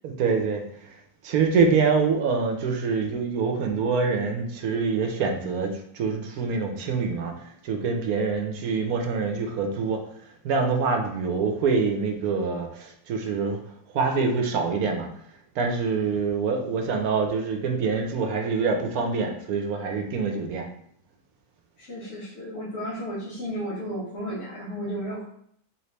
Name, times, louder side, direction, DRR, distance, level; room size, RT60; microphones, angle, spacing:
voice 1, 0.0-1.0 1.2-7.3 7.6-10.0 10.4-13.6 13.9-15.1 15.6-20.7, right 5 dB, 80° right, 3 dB, 1.1 m, -25 dB
voice 2, 21.8-25.3, equal, 55° left, -8 dB, 1.2 m, -33 dB
3.2 x 2.9 x 3.2 m, 0.66 s
omnidirectional pair, 1.6 m